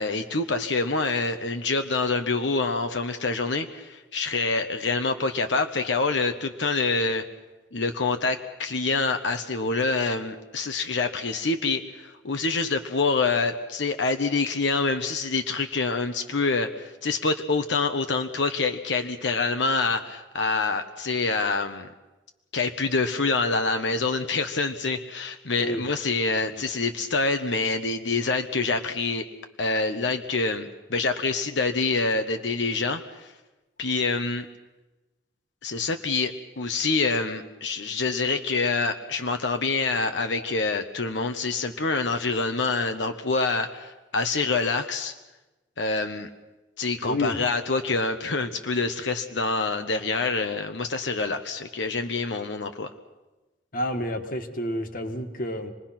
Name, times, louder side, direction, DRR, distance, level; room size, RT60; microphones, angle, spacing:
voice 1, 0.0-7.2 7.7-21.9 22.5-29.3 29.6-33.3 33.8-34.5 35.6-45.1 45.8-46.3 46.8-52.9, left 3 dB, 85° left, 6 dB, 1.1 m, -26 dB
voice 2, 47.0-47.4 53.7-55.7, left 1 dB, 50° left, 6 dB, 1.8 m, -29 dB
27.0 x 20.5 x 5.9 m, 1.1 s
head